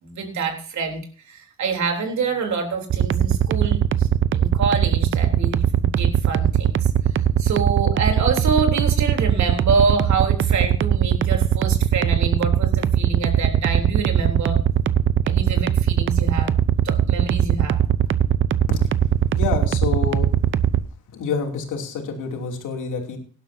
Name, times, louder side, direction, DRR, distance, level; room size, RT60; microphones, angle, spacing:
voice 1, 0.0-6.9 7.4-14.6 15.2-16.5 16.8-17.8, right 4 dB, 65° right, 3 dB, 3.5 m, -26 dB
sound 1, 2.9-20.8, right 10 dB, 40° right, 0.7 m, -19 dB
voice 2, 19.3-20.3 21.1-23.2, left 5 dB, 80° left, 2 dB, 3.0 m, -27 dB
18.0 x 11.5 x 2.8 m, 0.40 s
cardioid pair, 90°, 30 cm